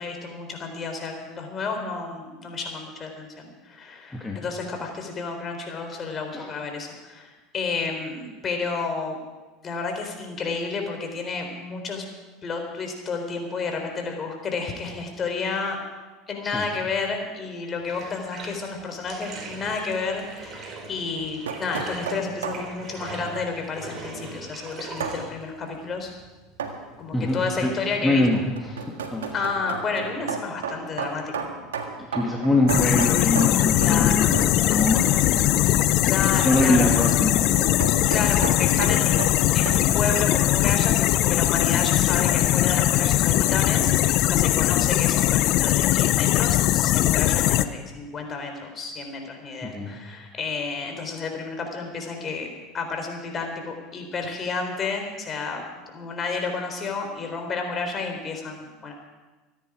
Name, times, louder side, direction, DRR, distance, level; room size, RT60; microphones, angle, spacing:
voice 1, 0.0-9.2 9.6-12.0 12.4-15.8 16.3-26.1 27.0-28.3 29.3-31.5 33.8-34.1 36.0-36.9 38.1-52.5 52.7-55.7 55.9-58.9, left 4 dB, 35° left, 3 dB, 4.0 m, -31 dB
Bathtub (filling or washing), 17.8-29.5, right 3 dB, 35° right, 4.3 m, -42 dB
sound 1, 21.1-22.7 25.0-25.2 26.6-26.9 28.2-34.1 34.3-34.6 36.7-39.8, right 6 dB, 85° right, 1.7 m, -33 dB
voice 2, 27.1-27.7 28.0-29.3 32.1-35.8 36.4-37.5 39.5-39.6 49.6-49.9, left 1 dB, 10° left, -2 dB, 2.4 m, -24 dB
sound 2, 32.7-47.7, left 14 dB, 55° left, 0.7 m, -20 dB
24.5 x 10.0 x 4.9 m, 1.2 s
hypercardioid pair, 85°, 0 cm